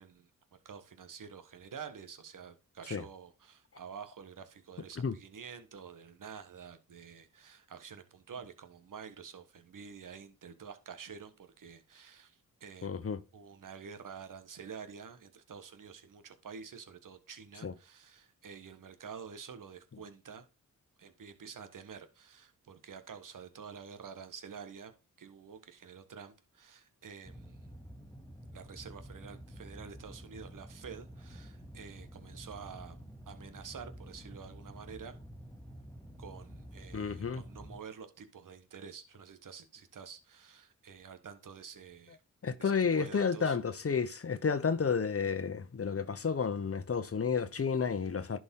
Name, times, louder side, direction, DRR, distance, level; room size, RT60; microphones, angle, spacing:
voice 1, 0.0-20.4 21.0-24.9 25.2-27.7 28.5-33.0 33.3-35.1 36.2-42.2 42.6-43.6, right 6 dB, 70° right, 1.5 m, -49 dB
voice 2, 12.8-13.2 17.6-17.7 36.9-37.4 42.4-48.4, left 6 dB, 45° left, 1.0 m, -31 dB
sound 1, 27.2-37.8, equal, 10° left, 2.5 m, -49 dB
11.0 x 5.0 x 3.7 m
cardioid pair, 50°, 33 cm